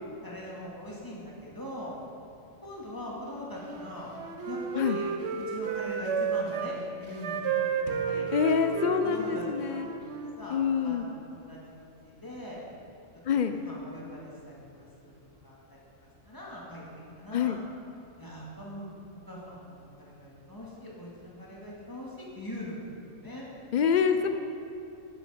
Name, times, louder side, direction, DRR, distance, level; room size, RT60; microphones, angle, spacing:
voice 1, 0.2-1.9 2.6-4.1 4.5-7.4 8.1-8.7 9.0-9.9 10.4-12.6 13.3-15.1 15.4-15.6 16.2-16.8 17.2-17.6 18.2-18.9 19.2-23.5 24.2-24.3, equal, 15° left, -5 dB, 2.2 m, -42 dB
Wind instrument woodwind instrument, 3.6-6.7 7.2-10.4, right 6 dB, 60° right, 1.0 m, -32 dB
sound 1, 7.9-9.8, left 1 dB, 55° left, 1.0 m, -46 dB
voice 2, 8.2-9.9 10.5-11.1 13.2-13.5 17.3-17.6 23.7-24.3, left 7 dB, 75° left, 8 dB, 0.4 m, -26 dB
11.0 x 9.1 x 5.1 m, 2.8 s
omnidirectional pair, 1.3 m